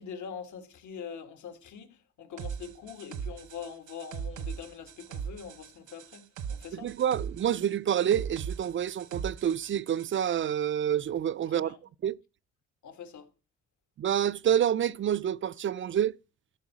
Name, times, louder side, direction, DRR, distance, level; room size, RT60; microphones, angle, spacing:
voice 1, 0.0-6.9 11.5-11.8 12.8-13.3, left 7 dB, 75° left, 1.9 m, -43 dB
sound 1, 2.4-10.2, right 7 dB, 80° right, 1.2 m, -40 dB
voice 2, 6.7-11.7 12.0-12.2 14.0-16.2, right 10 dB, 40° right, 0.4 m, -28 dB
13.0 x 4.7 x 6.0 m
cardioid pair, 90°, 30 cm